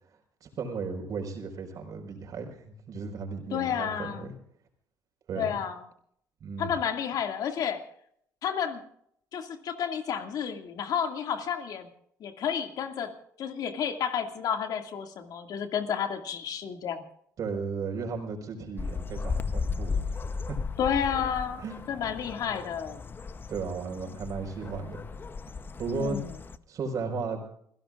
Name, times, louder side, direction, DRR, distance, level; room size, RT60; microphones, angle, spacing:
voice 1, 0.4-4.3 5.3-5.6 6.4-6.7 17.4-20.6 21.6-21.8 23.5-25.0 25.8-26.2 26.7-27.4, right 4 dB, 55° right, 4 dB, 4.9 m, -35 dB
voice 2, 3.5-4.3 5.3-5.8 6.6-7.8 8.4-8.8 9.3-11.9 12.2-13.1 13.4-17.0 20.8-23.0 25.9-26.3, left 8 dB, 65° left, 5 dB, 2.3 m, -31 dB
sound 1, 18.8-26.6, left 4 dB, 30° left, 0.9 m, -35 dB
29.0 x 16.0 x 2.5 m, 0.68 s
supercardioid pair, 80°, 7 cm